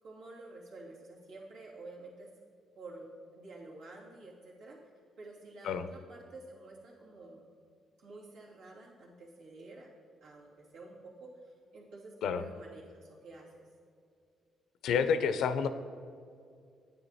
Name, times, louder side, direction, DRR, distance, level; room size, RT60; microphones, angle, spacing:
voice 1, 0.0-2.3 2.7-4.8 5.2-7.5 8.0-9.9 10.2-13.7, right 2 dB, 90° right, -5 dB, 2.8 m, -50 dB
voice 2, 14.8-15.7, left 6 dB, 80° left, 11 dB, 0.6 m, -29 dB
9.7 x 9.2 x 4.2 m, 2.4 s
cardioid pair, 90°, 0 cm